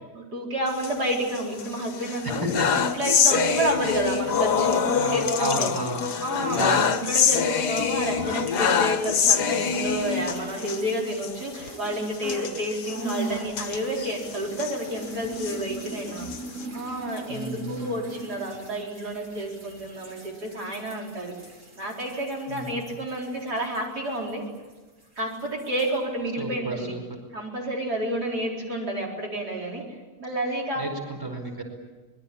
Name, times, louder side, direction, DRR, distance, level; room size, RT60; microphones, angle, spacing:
voice 1, 0.2-2.4 2.7-5.7 6.2-16.3 16.7-21.3 21.8-24.5 25.2-26.9 27.3-29.9 30.2-30.9, right 1 dB, 75° right, -1 dB, 5.2 m, -30 dB
sound 1, 0.7-1.6 2.0-10.8 11.2-11.3 11.6-11.7 12.2-14.7 15.2-16.6, left 6 dB, 85° left, 1.8 m, -25 dB
voice 2, 2.2-2.7 5.0-5.1 5.4-6.1 6.5-6.9 17.3-18.0 22.5-23.0 26.4-27.0 30.7-31.6, right 1 dB, 10° right, 3 dB, 4.9 m, -33 dB
sound 2, 9.7-12.5 12.8-24.7 25.0-26.0, right 2 dB, 50° right, 4.4 m, -40 dB
25.0 x 21.5 x 8.7 m, 1.3 s
omnidirectional pair, 1.7 m